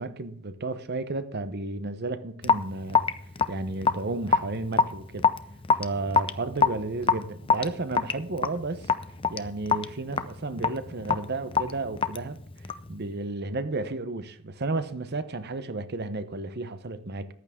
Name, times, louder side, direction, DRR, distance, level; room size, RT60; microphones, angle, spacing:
voice 1, 0.0-3.1 3.5-5.3 5.8-8.9 9.3-12.4 12.9-17.3, right 3 dB, 50° right, 0.8 m, -32 dB
Raindrop / Drip, 2.4-12.9, left 5 dB, 25° left, 0.6 m, -26 dB
14.5 x 11.0 x 3.6 m
head